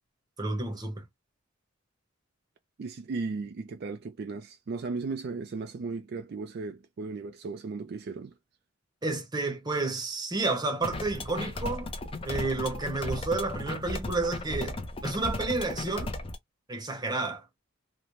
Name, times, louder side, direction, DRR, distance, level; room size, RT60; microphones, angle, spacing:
voice 1, 0.4-1.0 9.0-11.9 12.2-16.1 16.7-17.5, right 3 dB, 20° right, 0.8 m, -31 dB
voice 2, 2.8-8.3, right 4 dB, 50° right, 0.3 m, -36 dB
sound 1, 10.8-16.4, left 2 dB, 25° left, 0.4 m, -35 dB
3.0 x 2.1 x 2.5 m
head